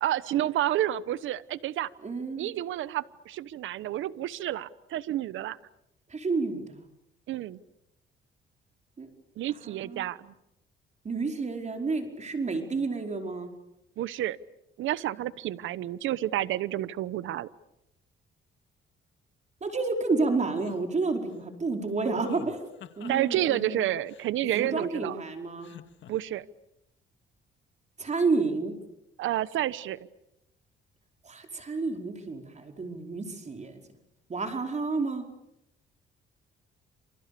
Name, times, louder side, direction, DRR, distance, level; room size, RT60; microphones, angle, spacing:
voice 1, 0.0-1.9 2.4-5.6 7.3-7.6 9.4-10.3 14.0-14.4 14.8-17.5 23.1-25.2 26.1-26.4 29.2-30.0, right 13 dB, 80° right, 17 dB, 1.1 m, -30 dB
voice 2, 2.0-2.5 6.1-6.9 9.0-9.1 9.5-10.0 11.0-13.5 19.6-22.6 23.0-23.8 24.5-25.7 28.0-28.7 31.2-33.8 34.3-35.2, right 3 dB, 35° right, 4 dB, 4.9 m, -30 dB
sound 1, 20.6-20.8 22.2-23.4 24.1-25.1 25.6-26.1, left 9 dB, 70° left, 2.1 m, -45 dB
29.0 x 28.0 x 6.9 m, 0.83 s
cardioid pair, 90°, 20 cm